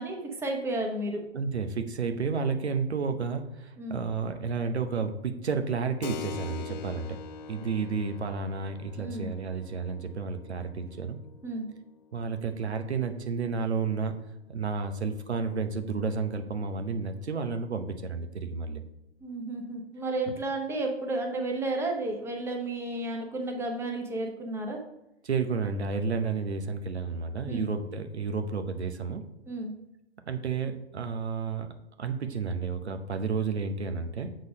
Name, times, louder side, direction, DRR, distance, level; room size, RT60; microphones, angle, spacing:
voice 1, 0.0-1.2 3.8-4.0 7.6-7.7 9.0-9.3 11.4-11.7 19.2-24.8 27.5-27.7 29.5-29.7, right 2 dB, 10° right, 2 dB, 0.8 m, -32 dB
voice 2, 1.3-7.2 7.5-11.2 12.1-14.2 14.5-18.8 25.2-29.2 30.3-31.7 32.0-34.3, right 5 dB, 85° right, 8 dB, 0.8 m, -31 dB
Keyboard (musical), 6.0-14.2, left 6 dB, 40° left, 0.5 m, -45 dB
6.6 x 3.9 x 5.2 m, 0.90 s
figure-of-eight pair, 115°, 32 cm